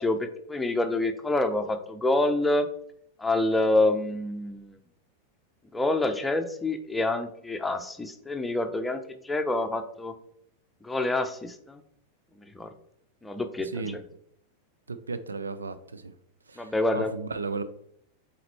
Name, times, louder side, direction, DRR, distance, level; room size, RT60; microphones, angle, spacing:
voice 1, 0.0-2.7 3.2-4.8 5.7-10.1 10.8-11.8 12.5-12.7 13.2-14.0 16.6-17.1, left 2 dB, 10° left, 7 dB, 0.7 m, -27 dB
voice 2, 14.9-16.1 16.5-17.6, right 4 dB, 75° right, 12 dB, 0.4 m, -35 dB
7.8 x 4.1 x 3.1 m, 0.68 s
figure-of-eight pair, 90°, 0 cm